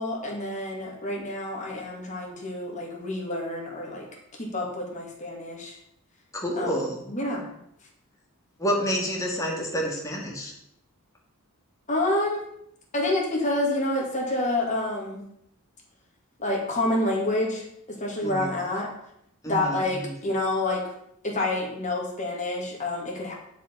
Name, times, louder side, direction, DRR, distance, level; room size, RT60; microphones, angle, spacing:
voice 1, 0.0-4.1 4.4-5.8 6.6-7.5 11.9-12.4 12.9-15.2 16.4-18.9 19.4-20.9 21.2-23.3, left 2 dB, 35° left, -1 dB, 2.5 m, -28 dB
voice 2, 6.3-7.0 8.6-10.5 18.2-18.5 19.4-20.1, equal, 15° left, -2 dB, 2.1 m, -29 dB
11.0 x 5.4 x 5.4 m, 0.75 s
head